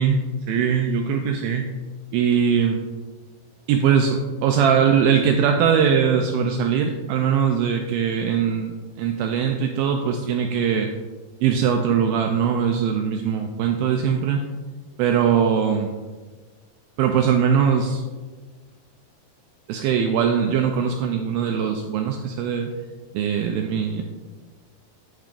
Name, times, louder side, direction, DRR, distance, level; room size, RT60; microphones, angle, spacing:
voice 1, 0.0-1.7 2.1-2.8 3.7-10.9 11.4-14.5 15.0-15.9 17.0-18.0 19.7-22.7 23.1-24.0, right 7 dB, 85° right, 4 dB, 2.1 m, -21 dB
12.5 x 5.1 x 2.5 m, 1.4 s
omnidirectional pair, 4.7 m